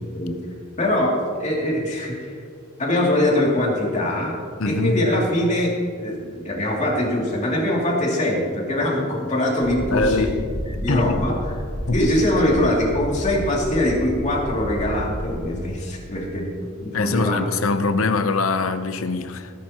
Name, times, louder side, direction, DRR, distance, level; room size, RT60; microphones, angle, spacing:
voice 1, 0.8-2.4 2.8-4.4 4.7-10.4 10.7-11.6 11.9-16.5 16.8-17.4, left 1 dB, 35° left, -3 dB, 2.7 m, -22 dB
voice 2, 4.6-5.0 9.9-10.3 10.9-11.1 11.9-12.0 16.9-19.5, left 3 dB, 90° left, 10 dB, 0.8 m, -22 dB
sound 1, 9.6-15.4, equal, 40° right, 2.0 m, -31 dB
18.5 x 11.5 x 3.0 m, 2.2 s
head